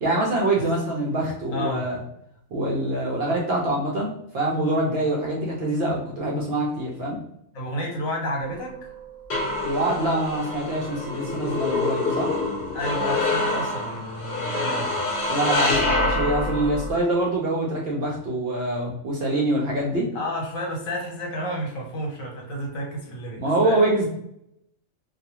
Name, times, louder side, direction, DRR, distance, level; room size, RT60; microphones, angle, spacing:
voice 1, 0.0-2.0 2.5-7.2 9.6-12.3 15.3-20.1 23.3-24.1, right 1 dB, 60° right, -2 dB, 0.7 m, -25 dB
voice 2, 1.5-1.9 7.5-8.8 12.7-15.0 20.1-23.9, equal, 75° left, 0 dB, 1.2 m, -31 dB
sound 1, 8.4-16.9, left 2 dB, 55° left, 0.9 m, -26 dB
2.3 x 2.3 x 2.8 m, 0.76 s
omnidirectional pair, 1.5 m